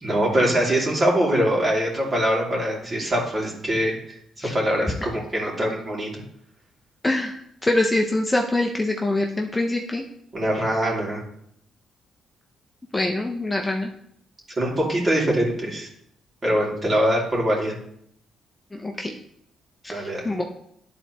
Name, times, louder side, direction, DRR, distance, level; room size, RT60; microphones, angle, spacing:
voice 1, 0.0-4.2 4.5-6.1 10.3-11.2 14.6-15.9 16.4-17.7 19.9-20.2, equal, 35° right, -3 dB, 2.7 m, -23 dB
voice 2, 7.0-7.3 7.6-10.0 12.9-13.9 18.7-19.2 19.8-20.4, left 2 dB, 15° left, 1 dB, 0.8 m, -24 dB
11.5 x 4.1 x 3.0 m, 0.70 s
cardioid pair, 90°, 0 cm